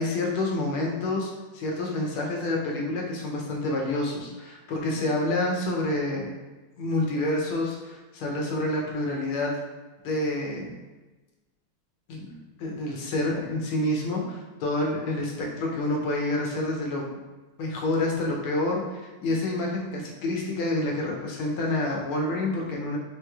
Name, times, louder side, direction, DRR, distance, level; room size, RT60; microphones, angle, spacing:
voice 1, 0.0-6.3 6.8-9.6 10.0-10.7 12.1-12.3 12.6-17.0 17.6-23.0, left 2 dB, 75° left, -1 dB, 1.5 m, -28 dB
4.8 x 3.0 x 2.3 m, 1.2 s
omnidirectional pair, 2.3 m